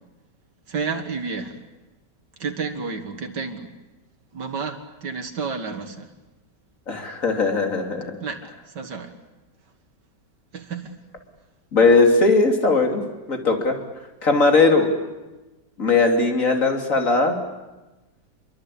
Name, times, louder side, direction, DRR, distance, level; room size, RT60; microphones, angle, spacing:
voice 1, 0.7-1.6 2.4-3.7 4.3-6.1 8.2-9.1 10.5-10.9, right 5 dB, 75° right, 5 dB, 2.5 m, -31 dB
voice 2, 6.9-8.2 11.7-13.0 13.3-13.8 14.2-14.9 15.8-17.4, left 3 dB, 50° left, 4 dB, 3.5 m, -18 dB
27.5 x 23.0 x 8.6 m, 1.1 s
omnidirectional pair, 1.8 m